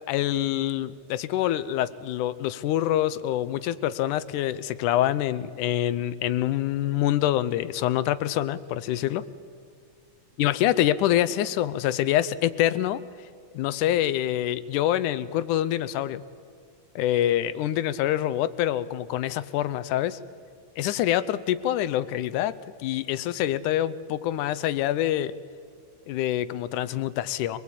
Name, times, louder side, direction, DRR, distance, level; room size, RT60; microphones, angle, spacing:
voice 1, 0.1-9.2 10.4-13.0 13.5-16.2 17.0-20.2 20.8-22.5 22.8-25.3 26.1-27.6, left 12 dB, 85° left, 16 dB, 2.2 m, -25 dB
24.0 x 19.5 x 8.5 m, 2.2 s
omnidirectional pair, 3.5 m